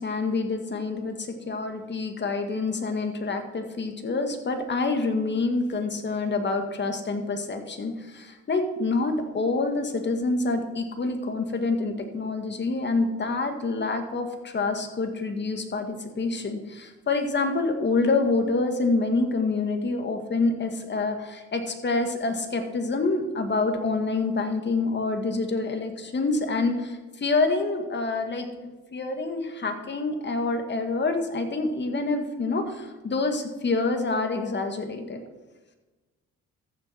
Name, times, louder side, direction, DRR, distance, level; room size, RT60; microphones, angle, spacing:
voice 1, 0.0-35.2, left 3 dB, 35° left, 5 dB, 1.8 m, -27 dB
14.0 x 7.0 x 4.5 m, 1.2 s
cardioid pair, 90°, 30 cm